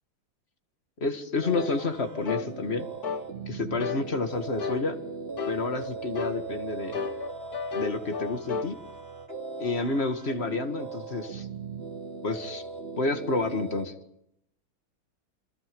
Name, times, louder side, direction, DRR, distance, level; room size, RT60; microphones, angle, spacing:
voice 1, 1.0-2.9 3.5-5.0 5.5-7.0 7.7-8.8 9.6-11.5 12.2-12.7 13.0-13.9, left 3 dB, 30° left, 7 dB, 2.0 m, -29 dB
sound 1, 1.4-13.8, right 4 dB, 30° right, 2.5 m, -39 dB
sound 2, 1.5-1.7 2.3-2.5 3.0-3.3 3.8-4.1 4.6-4.8 5.4-5.6 6.2-6.4 6.9-8.7, left 5 dB, 50° left, 1.8 m, -32 dB
28.5 x 24.0 x 5.3 m, 0.76 s
omnidirectional pair, 2.2 m